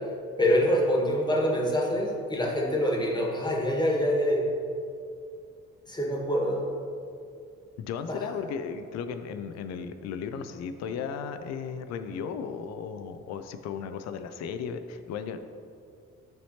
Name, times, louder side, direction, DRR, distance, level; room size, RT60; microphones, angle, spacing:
voice 1, 0.4-4.5 5.9-6.7 8.1-8.2, equal, 10° left, -1 dB, 1.4 m, -25 dB
voice 2, 7.8-15.4, left 6 dB, 40° left, 9 dB, 0.5 m, -35 dB
12.5 x 4.2 x 2.8 m, 2.4 s
figure-of-eight pair, 40°, 42 cm